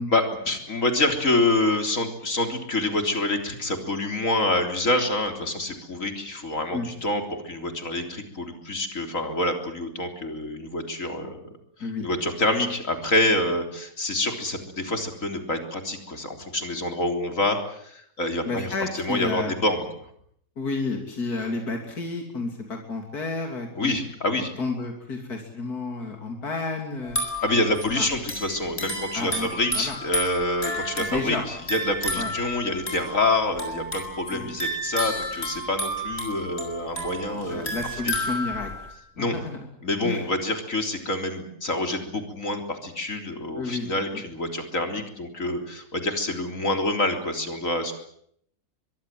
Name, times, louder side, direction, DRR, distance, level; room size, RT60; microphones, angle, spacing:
voice 1, 0.1-11.4 12.0-18.7 18.9-19.8 23.8-24.5 27.4-37.7 39.2-39.4 39.8-47.9, left 2 dB, 60° left, 5 dB, 4.1 m, -27 dB
voice 2, 18.5-19.5 20.6-24.0 24.6-28.1 29.1-29.5 29.7-29.9 31.0-31.4 32.2-32.3 34.3-34.5 37.3-38.7 39.2-39.6 40.0-40.3 43.5-43.9 44.1-44.2, left 3 dB, 80° left, 3 dB, 3.5 m, -31 dB
sound 1, 27.0-38.9, equal, 40° left, 6.8 m, -32 dB
24.0 x 22.5 x 7.7 m, 0.67 s
omnidirectional pair, 1.6 m